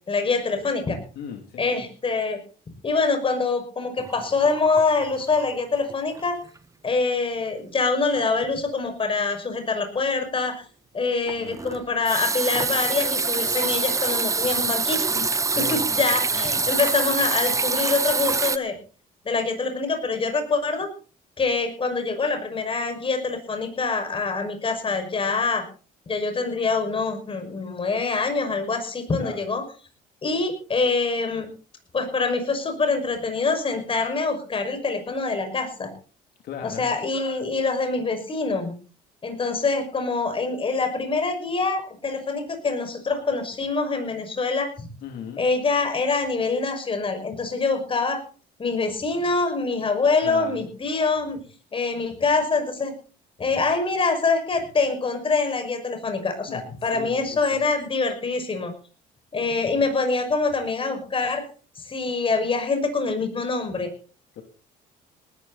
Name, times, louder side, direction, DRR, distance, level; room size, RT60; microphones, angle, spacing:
voice 1, 0.1-1.0 1.6-2.4 2.8-6.4 6.8-10.6 10.9-15.3 15.6-18.7 19.2-20.9 21.4-25.6 26.1-29.6 30.2-31.5 31.9-35.9 36.6-38.7 39.2-44.9 45.4-48.2 48.6-51.4 51.7-52.9 53.4-58.7 59.3-61.4 61.8-63.9, left 4 dB, 30° left, 7 dB, 5.8 m, -25 dB
voice 2, 1.1-1.8 11.4-11.6 15.5-16.5 29.2-29.4 36.4-36.8 45.0-45.4 50.2-50.6 56.5-57.4 64.3-64.4, left 7 dB, 70° left, 4 dB, 3.0 m, -37 dB
sound 1, 4.0-5.6 5.9-6.2 6.6-6.7 11.3-18.6, right 4 dB, 20° right, 0.8 m, -25 dB
19.0 x 13.0 x 4.2 m, 0.38 s
cardioid pair, 110°, 17 cm